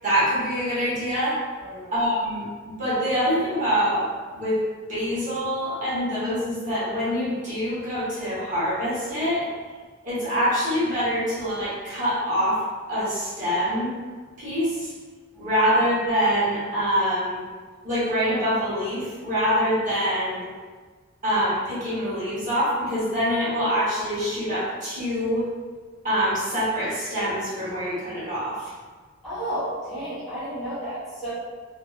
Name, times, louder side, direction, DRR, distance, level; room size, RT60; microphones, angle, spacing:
voice 1, 0.0-1.4 1.9-2.5 2.8-4.1 4.3-4.6 4.9-9.5 10.0-12.6 12.9-13.9 14.4-14.9 15.4-17.4 17.8-20.5 21.2-25.5 26.0-28.7, equal, 40° right, -10 dB, 1.0 m, -25 dB
voice 2, 1.6-1.9 15.3-15.4 29.2-31.3, right 1 dB, ahead, -14 dB, 1.0 m, -32 dB
2.5 x 2.4 x 2.3 m, 1.4 s
head